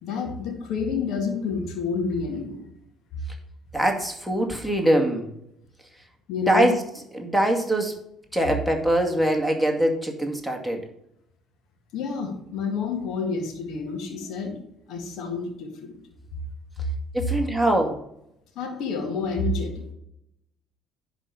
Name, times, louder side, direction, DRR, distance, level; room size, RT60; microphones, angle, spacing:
voice 1, 0.0-2.6 3.1-3.2 6.3-6.7 11.9-14.6 14.9-16.0 18.6-19.9, left 4 dB, 60° left, 3 dB, 2.0 m, -29 dB
voice 2, 3.7-5.3 6.5-6.8 7.1-8.0 8.3-10.8 17.1-18.0, right 1 dB, 5° left, 3 dB, 2.2 m, -23 dB
10.5 x 4.1 x 7.0 m, 0.77 s
hypercardioid pair, 55°, 0 cm